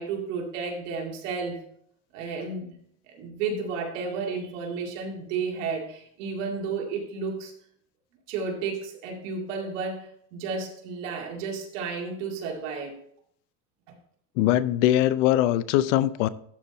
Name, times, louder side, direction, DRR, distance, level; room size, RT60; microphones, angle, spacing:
voice 1, 0.0-1.6 2.1-2.7 3.1-7.5 8.3-13.0 13.9-14.0, right 5 dB, 85° right, 1 dB, 2.2 m, -32 dB
voice 2, 14.4-16.3, left 13 dB, 80° left, 16 dB, 0.6 m, -21 dB
12.0 x 4.2 x 4.3 m, 0.68 s
cardioid pair, 170°, 37 cm